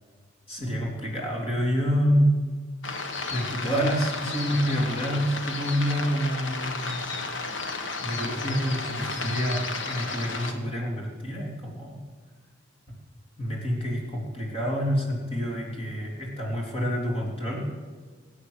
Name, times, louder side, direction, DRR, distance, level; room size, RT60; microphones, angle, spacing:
voice 1, 0.5-2.4 3.3-7.1 8.0-12.0 13.4-17.7, equal, 30° left, -2 dB, 3.5 m, -27 dB
sound 1, 2.8-10.5, left 3 dB, 70° left, 1.5 m, -33 dB
20.0 x 8.8 x 8.2 m, 1.5 s
head